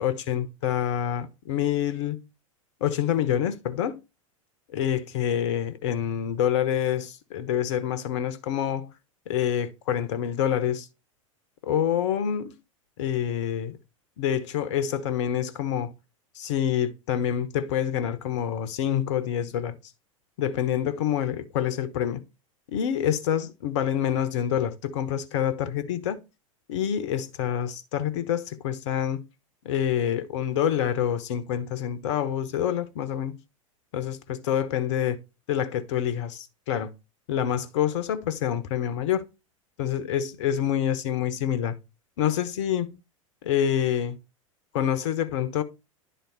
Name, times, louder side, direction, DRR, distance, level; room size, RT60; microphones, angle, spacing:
voice 1, 0.0-2.2 2.8-4.0 4.7-8.9 9.3-10.9 11.6-12.5 13.0-13.8 14.2-15.9 16.3-19.8 20.4-22.2 22.7-26.2 26.7-29.2 29.6-33.4 33.9-35.2 35.5-36.9 37.3-39.3 39.8-41.8 42.2-43.0 43.4-44.2 44.7-45.6, left 9 dB, 60° left, 1.1 m, -27 dB
10.5 x 3.9 x 4.0 m
figure-of-eight pair, 90°, 18 cm